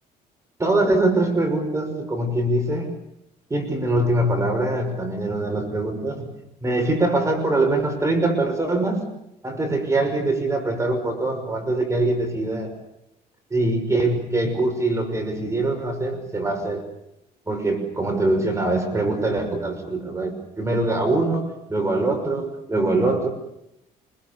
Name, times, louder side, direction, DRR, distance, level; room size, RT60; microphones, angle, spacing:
voice 1, 0.6-2.9 3.5-6.3 6.6-9.1 9.4-12.7 13.5-16.9 17.5-23.3, right 2 dB, 15° right, 5 dB, 5.9 m, -23 dB
27.5 x 21.5 x 7.0 m, 0.81 s
cardioid pair, 110°, 17 cm